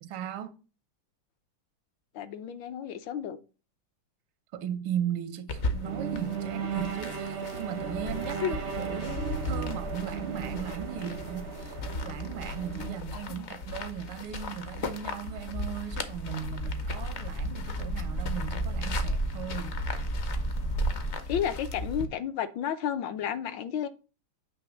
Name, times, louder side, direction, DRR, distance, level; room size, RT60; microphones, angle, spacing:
voice 1, 0.0-0.5 4.5-19.8, right 9 dB, 85° right, 1.6 m, -37 dB
voice 2, 2.1-3.4 8.4-8.5 13.1-13.4 21.3-23.9, left 9 dB, 75° left, 1.3 m, -32 dB
sound 1, 5.5-22.1, left 2 dB, 55° left, 0.7 m, -37 dB
sound 2, 5.8-13.0, right 7 dB, 65° right, 0.7 m, -36 dB
sound 3, 15.9-21.1, right 1 dB, 30° left, 0.4 m, -33 dB
8.2 x 3.1 x 6.2 m
omnidirectional pair, 2.2 m